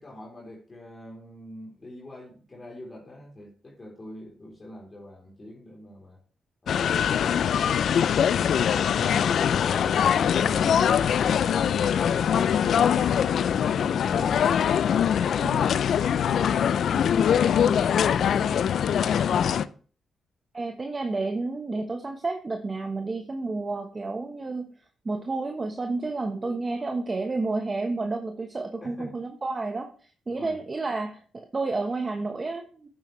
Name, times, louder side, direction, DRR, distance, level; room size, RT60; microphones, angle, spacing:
voice 1, 0.0-6.2 26.4-26.5 26.8-26.9 28.8-29.2 30.3-30.6, equal, 30° left, -2 dB, 3.6 m, -44 dB
sound 1, 6.7-19.7, left 8 dB, 70° left, 0.4 m, -23 dB
voice 2, 20.5-24.7 25.0-31.2 31.5-32.9, right 3 dB, 35° right, 4 dB, 1.2 m, -30 dB
9.6 x 7.8 x 3.2 m, 0.41 s
supercardioid pair, 60°, 0 cm